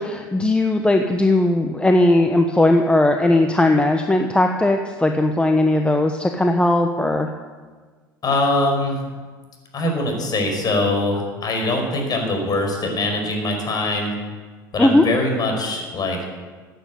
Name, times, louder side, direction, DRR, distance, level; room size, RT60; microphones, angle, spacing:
voice 1, 0.0-7.3 14.8-15.0, left 1 dB, 10° left, 4 dB, 1.1 m, -18 dB
voice 2, 8.2-9.0 9.7-14.2 14.7-16.2, left 2 dB, 35° left, 2 dB, 5.4 m, -22 dB
14.5 x 9.2 x 8.6 m, 1.4 s
hypercardioid pair, 75°, 12 cm